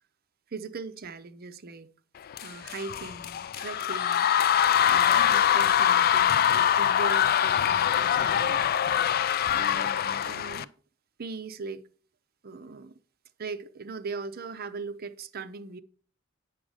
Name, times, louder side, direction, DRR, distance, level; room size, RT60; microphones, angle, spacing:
voice 1, 0.5-1.9 2.4-4.6 4.9-9.2 9.5-10.7 11.2-11.8 12.4-13.0 13.4-15.8, right 4 dB, 50° right, 0.7 m, -40 dB
sound 1, 2.3-10.6, left 9 dB, 50° left, 0.3 m, -24 dB
8.5 x 6.2 x 4.9 m
head